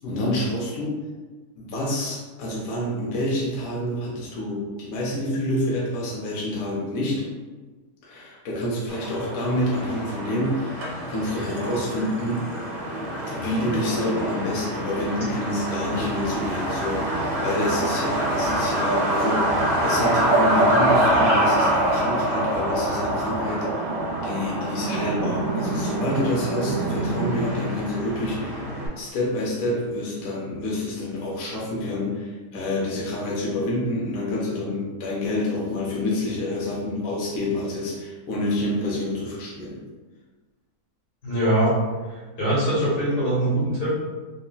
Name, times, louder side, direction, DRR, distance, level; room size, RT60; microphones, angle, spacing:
voice 1, 0.0-1.0 1.6-7.2 8.0-12.4 13.3-39.8, left 1 dB, 70° left, -4 dB, 1.0 m, -28 dB
Truck, 8.9-28.9, right 1 dB, 70° right, 1.2 m, -25 dB
sound 1, 23.2-27.7, right 3 dB, 90° right, 1.1 m, -30 dB
voice 2, 41.2-41.7 42.4-43.9, right 1 dB, 85° left, -9 dB, 1.9 m, -22 dB
3.7 x 2.1 x 2.2 m, 1.3 s
omnidirectional pair, 1.6 m